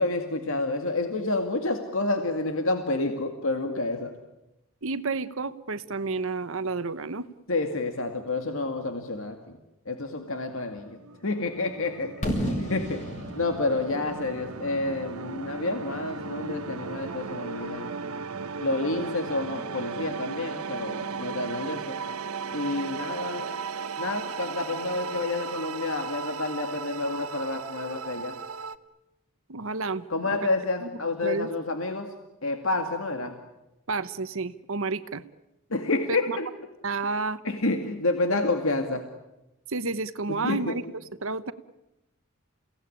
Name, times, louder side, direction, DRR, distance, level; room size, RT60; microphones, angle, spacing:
voice 1, 0.0-4.1 7.5-9.6 9.9-13.0 13.4-17.9 18.6-22.0 22.5-23.5 24.0-28.4 30.1-32.1 32.4-33.3 35.7-36.5 37.4-39.1 40.3-40.8, left 2 dB, 65° left, 6 dB, 2.2 m, -29 dB
voice 2, 4.8-7.3 29.5-30.0 30.8-30.9 31.2-31.5 33.9-35.2 36.1-36.4 36.8-37.4 38.3-38.4 39.7-40.8 41.2-41.5, right 3 dB, 65° right, 13 dB, 1.0 m, -30 dB
sound 1, 10.4-28.8, right 5 dB, 85° right, 1.0 m, -36 dB
Fireworks, 12.2-16.1, equal, 35° left, 7.2 m, -33 dB
30.0 x 17.5 x 10.0 m, 0.94 s
head